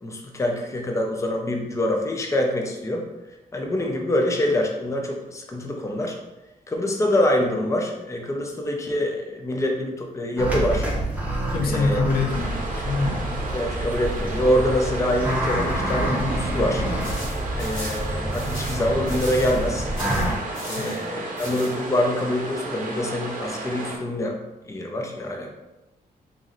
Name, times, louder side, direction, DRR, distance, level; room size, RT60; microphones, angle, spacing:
voice 1, 0.0-3.0 3.5-6.2 6.7-10.9 11.7-12.0 13.5-16.9 17.6-19.9 20.7-24.4 24.7-25.5, left 1 dB, 20° left, 2 dB, 0.5 m, -25 dB
sound 1, 10.4-20.3, right 1 dB, 10° right, 0.8 m, -27 dB
voice 2, 11.5-13.3 20.8-21.0, left 3 dB, 75° left, 2 dB, 0.6 m, -25 dB
sound 2, 12.3-24.0, right 2 dB, 60° right, 0.7 m, -34 dB
sound 3, 17.0-19.7 20.0-21.0 21.4-21.7, equal, 60° left, 1.2 m, -37 dB
3.1 x 2.6 x 3.8 m, 1.0 s
cardioid pair, 110°, 15 cm